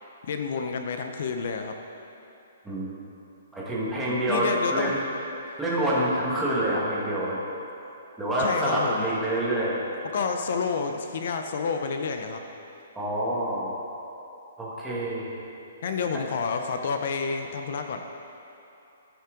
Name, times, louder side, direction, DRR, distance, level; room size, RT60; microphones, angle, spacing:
voice 1, 0.3-1.7 4.3-4.9 8.4-9.1 10.1-12.4 15.8-18.0, left 5 dB, 50° left, 5 dB, 0.6 m, -29 dB
voice 2, 3.5-5.0 5.6-7.4 8.2-9.8 12.9-13.7 14.6-15.4 16.1-16.2, right 1 dB, 5° right, -8 dB, 1.5 m, -27 dB
13.5 x 5.6 x 3.8 m, 2.8 s
hypercardioid pair, 170°, 0 cm